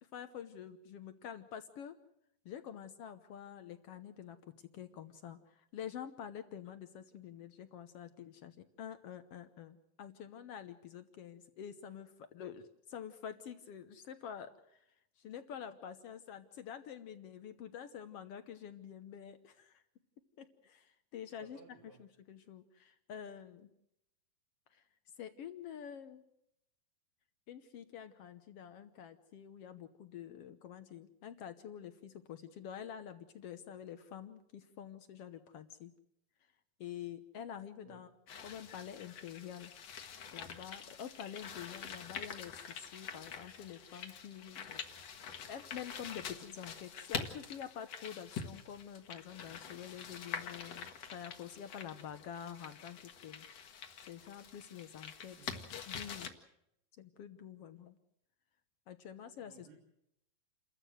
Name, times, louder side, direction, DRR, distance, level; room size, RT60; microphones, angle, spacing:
voice 1, 0.0-1.9 2.4-14.8 15.2-19.8 20.4-21.6 22.0-23.7 24.7-24.8 25.2-26.2 27.5-35.9 36.8-38.1 38.4-39.7 40.3-44.8 45.1-53.5 54.1-56.3 57.0-58.0 58.9-59.7, left 9 dB, 70° left, 10 dB, 1.4 m, -48 dB
voice 2, 21.4-22.1 37.8-38.0 55.3-55.8 59.4-59.8, right 5 dB, 75° right, -1 dB, 4.2 m, -59 dB
sound 1, 38.3-56.3, left 6 dB, 55° left, 2.4 m, -46 dB
29.0 x 14.0 x 7.8 m, 0.80 s
omnidirectional pair, 3.9 m